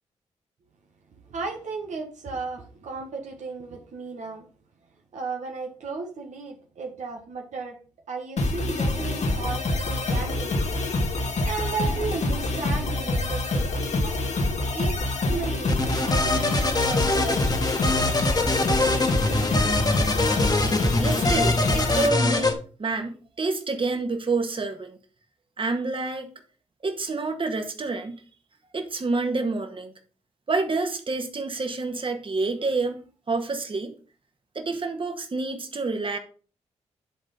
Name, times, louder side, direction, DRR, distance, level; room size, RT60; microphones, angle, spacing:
voice 1, 1.3-4.5 5.1-7.8 8.1-10.6 11.4-14.2 14.7-15.7 16.0-17.4, right 4 dB, 75° right, 2 dB, 1.3 m, -34 dB
sound 1, 8.4-22.1, left 2 dB, 65° left, 1.7 m, -26 dB
sound 2, 15.7-22.5, left 2 dB, 35° left, 1.6 m, -24 dB
voice 2, 21.0-25.0 25.6-26.3 26.8-28.2 28.7-29.9 30.5-33.0 33.3-33.9 34.5-36.2, right 3 dB, 45° right, 5 dB, 1.8 m, -28 dB
10.5 x 3.9 x 5.2 m, 0.39 s
supercardioid pair, 45°, 12 cm